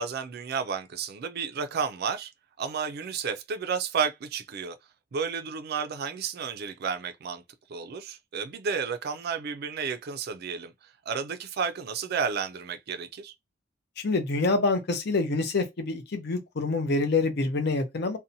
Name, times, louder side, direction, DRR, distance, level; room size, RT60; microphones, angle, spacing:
voice 1, 0.0-2.3 2.6-4.8 5.1-7.4 7.7-13.3, right 6 dB, 55° right, 0.4 m, -32 dB
voice 2, 14.0-18.2, left 3 dB, 60° left, 0.6 m, -26 dB
2.7 x 2.1 x 2.6 m
head